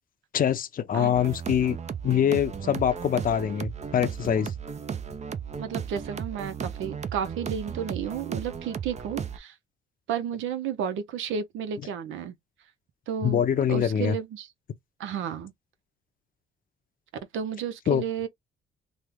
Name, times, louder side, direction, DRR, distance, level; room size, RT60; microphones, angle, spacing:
voice 1, 0.3-1.8 2.0-4.5 13.2-14.2 17.9-18.0, left 9 dB, 45° left, 0.6 m, -24 dB
sound 1, 1.1-9.4, right 7 dB, 35° right, 0.5 m, -35 dB
voice 2, 5.6-9.5 10.1-12.3 13.1-13.4 13.7-14.5 15.0-15.5 17.3-18.3, right 8 dB, 80° right, 0.6 m, -32 dB
3.1 x 2.1 x 3.5 m
cardioid pair, 90°, 20 cm